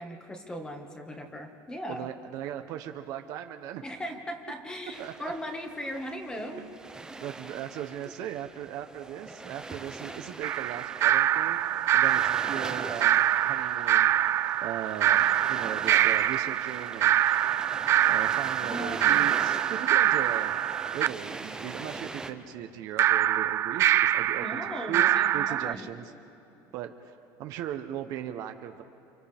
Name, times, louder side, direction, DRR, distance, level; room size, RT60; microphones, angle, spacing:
voice 1, 0.0-2.1 3.8-6.6 10.1-10.2 18.6-19.2 24.4-25.9, equal, 10° left, 3 dB, 1.7 m, -38 dB
voice 2, 1.9-3.8 5.0-5.3 6.6-6.7 7.2-11.6 11.9-14.1 14.6-17.5 18.1-20.6 20.9-25.0 25.3-26.1 26.7-26.9 27.4-28.8, right 10 dB, 60° right, 7 dB, 0.9 m, -38 dB
sound 1, 4.9-22.3, right 3 dB, 10° right, 0.9 m, -42 dB
sound 2, 10.4-21.1 23.0-25.7, right 12 dB, 40° right, 0.4 m, -25 dB
29.5 x 26.5 x 3.5 m, 3.0 s
cardioid pair, 150°, 7 cm